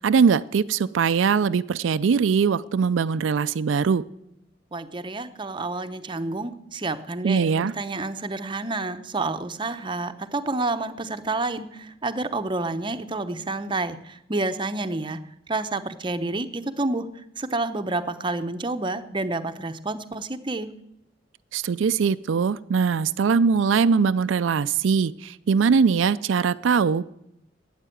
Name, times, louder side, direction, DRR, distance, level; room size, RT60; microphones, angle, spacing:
voice 1, 0.0-4.0 7.2-7.7 21.5-27.1, right 5 dB, 85° right, 13 dB, 0.4 m, -21 dB
voice 2, 4.7-7.5 7.8-15.2 15.5-17.1 17.4-20.7, right 2 dB, 25° right, 8 dB, 0.7 m, -29 dB
12.0 x 8.9 x 9.2 m, 0.82 s
head